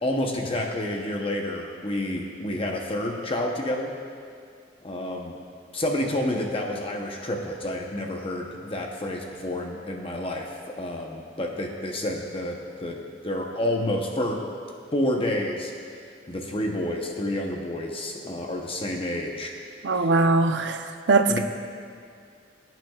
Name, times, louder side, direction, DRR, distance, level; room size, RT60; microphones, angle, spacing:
voice 1, 0.0-3.9 4.8-5.3 5.7-14.4 14.9-15.7 16.3-19.5 20.0-20.1 21.3-21.4, left 1 dB, 30° left, 1 dB, 0.8 m, -29 dB
voice 2, 19.8-20.8 21.1-21.4, right 3 dB, 70° right, 7 dB, 0.6 m, -20 dB
19.5 x 9.1 x 2.4 m, 2.3 s
head